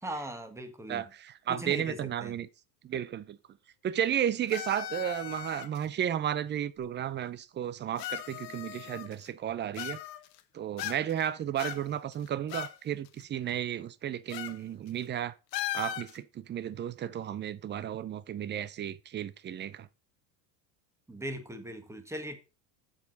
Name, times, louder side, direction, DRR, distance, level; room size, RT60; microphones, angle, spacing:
voice 1, 0.0-1.0 1.5-2.3 21.1-22.4, right 1 dB, 5° right, 1.6 m, -39 dB
voice 2, 0.9-2.5 2.8-3.4 3.8-10.0 10.5-15.3 15.7-19.9, right 10 dB, 20° right, 0.5 m, -33 dB
sound 1, 4.5-5.8 6.8-6.9 8.0-9.3 9.7-10.4 10.8-11.2 11.6-12.8 13.0-13.1 14.3-14.6 14.9-15.0 15.5-16.2, left 13 dB, 80° left, 1.1 m, -38 dB
7.2 x 7.2 x 4.0 m
hypercardioid pair, 100°, 50 cm